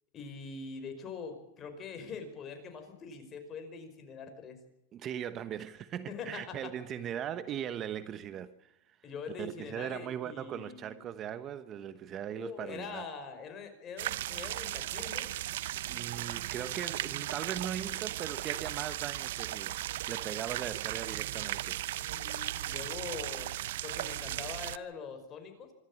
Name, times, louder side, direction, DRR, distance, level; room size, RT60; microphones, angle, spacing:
voice 1, 0.1-4.6 6.1-6.7 9.0-11.1 12.3-15.3 22.0-23.5 23.8-25.7, left 5 dB, 25° left, 5.3 m, -43 dB
voice 2, 4.9-9.0 9.4-13.0 15.9-21.8, right 9 dB, 30° right, 1.1 m, -39 dB
sound 1, 14.0-24.8, right 14 dB, 75° right, 0.7 m, -36 dB
26.0 x 13.0 x 8.7 m
supercardioid pair, 135°, 0 cm